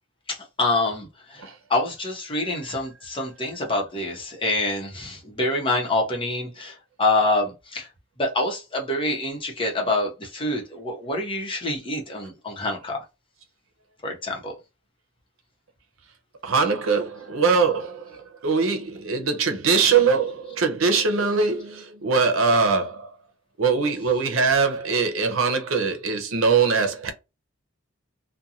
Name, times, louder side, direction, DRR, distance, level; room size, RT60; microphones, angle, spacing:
voice 1, 0.3-7.9 8.2-13.0 14.0-14.5, left 2 dB, 25° left, 0.8 m, -26 dB
voice 2, 16.4-23.1 23.6-27.1, right 5 dB, 90° right, 0.7 m, -22 dB
2.5 x 2.2 x 2.8 m
head